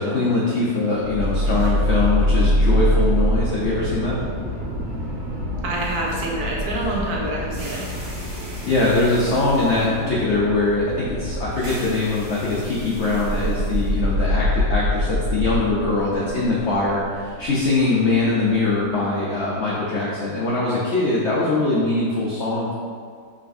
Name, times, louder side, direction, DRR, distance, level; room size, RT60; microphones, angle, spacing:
voice 1, 0.0-4.2 8.6-22.7, left 3 dB, 75° left, -6 dB, 0.6 m, -22 dB
sound 1, 1.0-19.1, equal, 50° right, 1.3 m, -25 dB
voice 2, 5.6-7.8, right 1 dB, 70° right, -2 dB, 1.0 m, -27 dB
4.9 x 3.1 x 2.6 m, 2.1 s
omnidirectional pair, 1.9 m